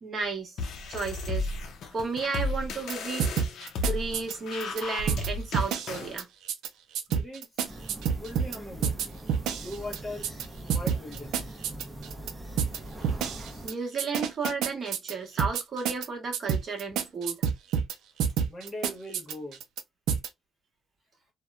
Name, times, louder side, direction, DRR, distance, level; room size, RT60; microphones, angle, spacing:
voice 1, 0.0-1.5 1.9-3.2 3.8-6.3 13.6-17.4, right 4 dB, 35° right, 1.1 m, -33 dB
sound 1, 0.6-6.1, left 2 dB, 65° left, 0.5 m, -34 dB
sound 2, 2.9-3.0 3.2-4.8 5.1-5.3 5.5-6.2 6.5-6.7 6.9-8.6 8.8-10.4 10.7-12.3 12.6-12.8 13.0-13.7 14.0-16.1 16.3-17.9 18.2-19.8 20.1-20.3, right 7 dB, 85° right, 0.4 m, -28 dB
voice 2, 7.1-7.9 8.1-9.0 9.5-11.4 18.5-19.6, left 1 dB, 10° left, 1.1 m, -40 dB
sound 3, 7.7-13.7, right 1 dB, 15° right, 0.6 m, -42 dB
2.8 x 2.1 x 2.3 m
cardioid pair, 145°, 0 cm